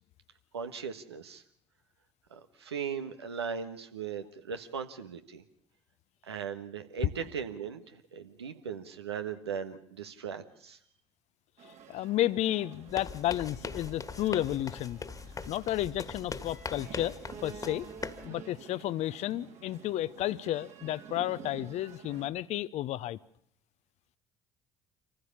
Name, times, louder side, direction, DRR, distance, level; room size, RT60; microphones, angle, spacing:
voice 1, 0.5-1.4 2.3-5.4 6.2-10.8, right 7 dB, 85° right, 1.4 m, -38 dB
voice 2, 11.6-15.0 15.5-17.2 17.4-17.9 18.2-23.2, left 13 dB, 55° left, 0.7 m, -32 dB
sound 1, 11.6-22.3, right 6 dB, 60° right, 3.1 m, -50 dB
sound 2, 12.9-18.3, left 4 dB, 25° left, 1.8 m, -41 dB
26.5 x 15.0 x 7.2 m
figure-of-eight pair, 55°, 13 cm